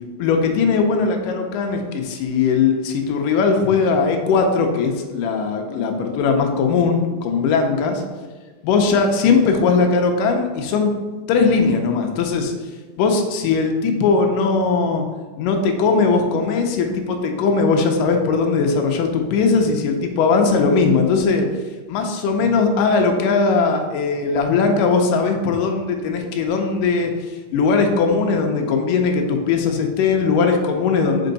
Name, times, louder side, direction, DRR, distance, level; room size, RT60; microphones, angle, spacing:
voice 1, 0.2-8.0 8.6-10.9 11.3-12.5 13.0-15.0 15.4-21.5 21.9-27.1 27.5-31.3, left 4 dB, 75° left, 3 dB, 2.2 m, -19 dB
5.5 x 5.3 x 4.0 m, 1.4 s
omnidirectional pair, 4.1 m